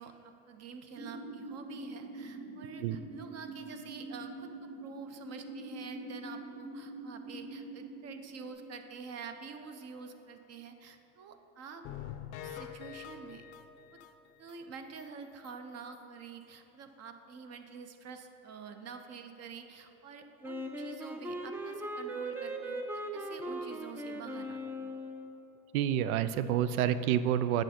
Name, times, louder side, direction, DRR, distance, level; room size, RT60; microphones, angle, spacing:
voice 1, 0.0-11.8 12.4-13.4 13.9-14.0 14.4-24.9, right 5 dB, 40° right, 7 dB, 0.7 m, -47 dB
sound 1, 0.9-8.5, right 2 dB, 55° right, 1.6 m, -44 dB
sound 2, 11.8-14.6 15.0-15.1 15.4-15.5 15.9-16.0, left 9 dB, 50° left, 0.6 m, -45 dB
Wind instrument woodwind instrument, 20.4-25.5, right 1 dB, 5° right, 0.5 m, -39 dB
voice 2, 25.7-27.6, right 10 dB, 85° right, 13 dB, 0.5 m, -28 dB
8.7 x 6.5 x 4.3 m, 2.9 s
supercardioid pair, 110°, 42 cm